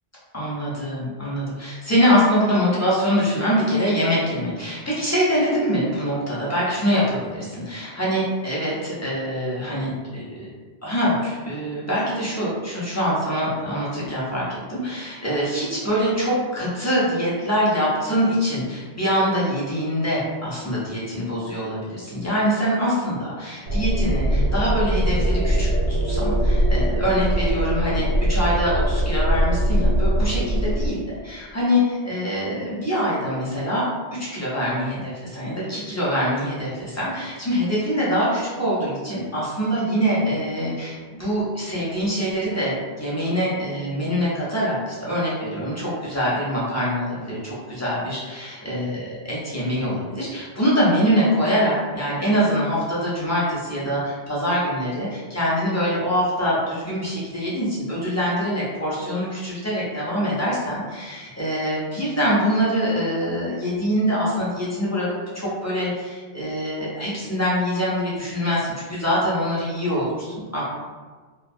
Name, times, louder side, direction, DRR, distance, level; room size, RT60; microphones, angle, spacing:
voice 1, 0.3-10.5 10.8-70.6, equal, 20° left, -8 dB, 0.5 m, -24 dB
sound 1, 23.7-30.9, right 1 dB, 80° right, 0.8 m, -21 dB
2.4 x 2.2 x 2.5 m, 1.5 s
omnidirectional pair, 1.1 m